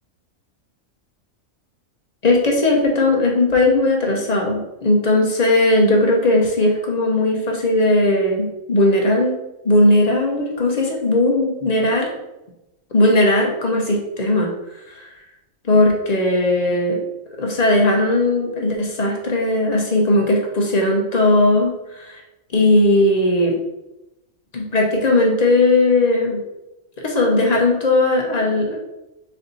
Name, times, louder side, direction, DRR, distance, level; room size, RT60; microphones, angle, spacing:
voice 1, 2.2-9.4 9.6-12.1 12.9-14.5 14.9-15.1 15.6-17.0 17.4-22.2 22.5-23.6 24.5-26.4 27.0-28.8, left 2 dB, 40° left, 0 dB, 0.7 m, -17 dB
4.3 x 2.8 x 4.0 m, 0.95 s
omnidirectional pair, 1.4 m